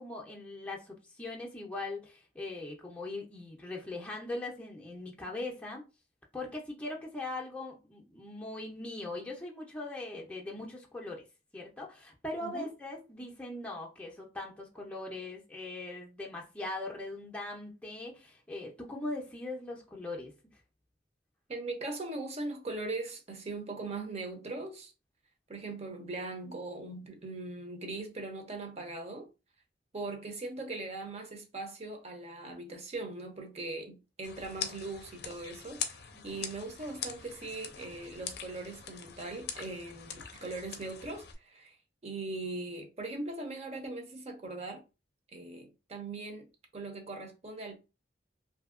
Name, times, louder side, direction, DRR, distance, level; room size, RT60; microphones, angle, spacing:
voice 1, 0.0-5.8 6.3-11.2 11.5-20.3 36.1-36.4, left 2 dB, 10° left, 0.5 m, -40 dB
voice 2, 21.5-24.9 25.5-29.3 29.9-41.8 42.0-44.8 45.3-46.5 46.7-47.8, right 2 dB, 40° right, 0.7 m, -40 dB
sound 1, 34.2-41.3, left 7 dB, 65° left, 0.5 m, -42 dB
2.7 x 2.7 x 2.4 m
head